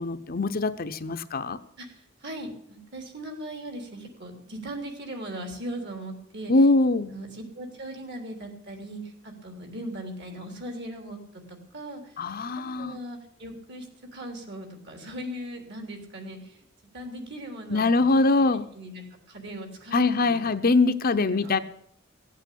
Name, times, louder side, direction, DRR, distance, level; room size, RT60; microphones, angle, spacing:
voice 1, 0.0-1.6 6.5-7.1 12.2-13.0 17.7-18.6 19.9-21.6, left 3 dB, 45° left, 9 dB, 0.7 m, -23 dB
voice 2, 1.8-6.5 7.1-11.2 11.5-12.1 12.8-13.9 14.1-16.6 16.9-18.0 18.4-20.5 21.1-21.6, right 1 dB, 55° right, 5 dB, 3.4 m, -39 dB
15.5 x 8.4 x 8.4 m, 0.69 s
head